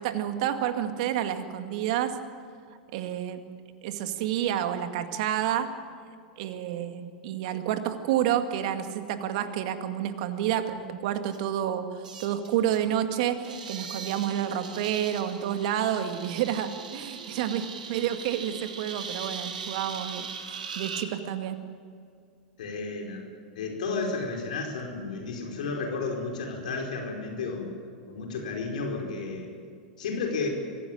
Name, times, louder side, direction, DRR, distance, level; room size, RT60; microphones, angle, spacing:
voice 1, 0.0-2.2 2.9-3.4 3.8-5.7 6.4-21.6, right 10 dB, 60° right, 8 dB, 2.1 m, -29 dB
sound 1, 11.3-11.4 12.0-12.8 13.3-21.1, right 6 dB, 80° right, 2.5 m, -40 dB
voice 2, 22.6-23.2 23.5-27.7 28.1-29.5 30.0-30.5, left 4 dB, 75° left, 2 dB, 4.9 m, -32 dB
24.0 x 16.5 x 8.9 m, 2.3 s
hypercardioid pair, 95°, 4 cm